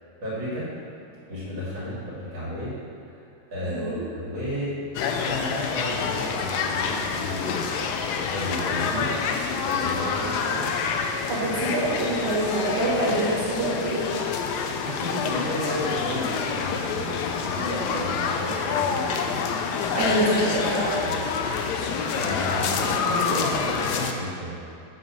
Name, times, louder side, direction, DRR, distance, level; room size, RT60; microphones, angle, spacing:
voice 1, 0.2-0.7 1.3-2.7 3.5-4.8 5.2-7.6 8.2-9.1 9.6-10.7 11.4-11.8 14.7-19.4 21.0-21.2 22.1-24.6, equal, 65° right, -10 dB, 2.7 m, -32 dB
voice 2, 3.7-4.0 11.3-14.1 19.9-21.1, right 1 dB, 80° right, -7 dB, 2.0 m, -25 dB
sound 1, 4.9-24.1, left 5 dB, 75° left, 0.9 m, -27 dB
6.6 x 4.7 x 6.1 m, 2.6 s
omnidirectional pair, 2.3 m